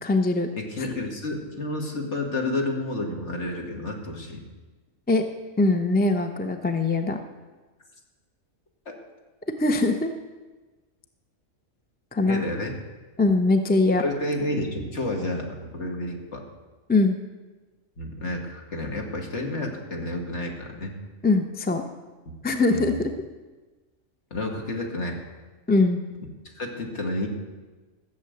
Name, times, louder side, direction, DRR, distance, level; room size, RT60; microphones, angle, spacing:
voice 1, 0.0-0.5 5.1-5.2 5.6-7.2 9.6-10.1 12.1-12.4 13.2-14.0 16.9-17.2 21.2-21.8 22.4-23.1 25.7-26.0, left 2 dB, 10° left, 6 dB, 0.6 m, -21 dB
voice 2, 0.6-4.4 12.3-12.7 14.0-16.4 18.0-20.9 22.7-22.9 24.3-25.2 26.4-27.3, left 2 dB, 55° left, 1 dB, 2.3 m, -30 dB
14.5 x 7.2 x 8.0 m, 1.2 s
omnidirectional pair, 1.4 m